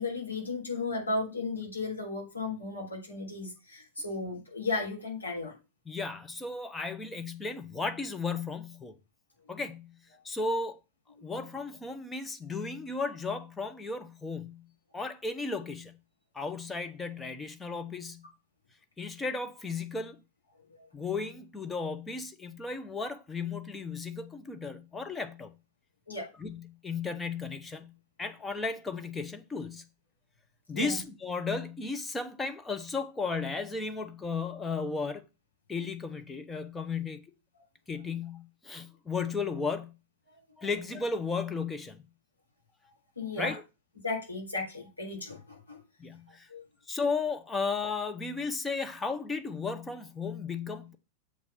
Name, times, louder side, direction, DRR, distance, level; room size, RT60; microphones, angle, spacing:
voice 1, 0.0-5.5 11.2-11.3 26.1-26.3 30.7-31.0 43.2-43.5 44.0-45.8 46.5-46.6, left 3 dB, 80° left, 3.7 m, -35 dB
voice 2, 5.9-9.0 9.5-10.0 10.2-10.8 11.2-14.7 14.9-16.0 16.3-18.2 19.0-20.2 20.9-25.5 26.4-27.9 28.2-29.8 30.7-35.2 35.7-37.2 37.9-39.9 40.6-42.0 43.4-43.6 46.0-46.5 46.9-51.0, left 4 dB, 15° left, 1.0 m, -34 dB
7.4 x 4.6 x 5.6 m
figure-of-eight pair, 90°, 0 cm